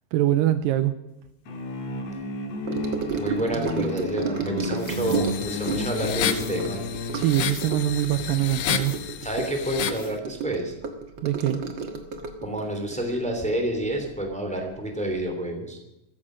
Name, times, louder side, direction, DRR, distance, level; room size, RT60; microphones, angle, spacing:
voice 1, 0.1-0.9 7.1-9.0 11.2-11.6, right 13 dB, 80° right, 11 dB, 2.3 m, -23 dB
sound 1, 1.5-7.3, left 2 dB, 50° left, 2.7 m, -32 dB
Gurgling / Sink (filling or washing) / Trickle dribble, 2.7-14.3 14.6-14.9 15.2-15.3, right 5 dB, 55° right, 1.3 m, -32 dB
voice 2, 3.2-6.8 9.2-10.7 12.4-15.8, right 1 dB, ahead, 3 dB, 2.4 m, -29 dB
sound 2, 4.8-10.1, left 10 dB, 75° left, 2.6 m, -31 dB
15.0 x 14.0 x 6.3 m, 0.94 s
omnidirectional pair, 4.2 m